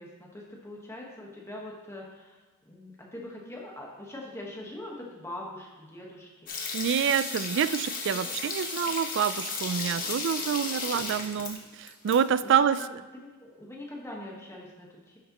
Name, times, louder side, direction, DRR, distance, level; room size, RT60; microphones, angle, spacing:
voice 1, 0.0-2.4 2.7-6.5 8.1-8.3 12.4-12.6 13.1-15.2, left 1 dB, 15° left, -2 dB, 1.3 m, -42 dB
sound 1, 6.5-12.2 12.4-12.5, left 4 dB, 45° left, 1.2 m, -34 dB
voice 2, 6.7-12.8, right 8 dB, 60° right, 15 dB, 0.3 m, -27 dB
10.5 x 6.4 x 3.0 m, 1.3 s
head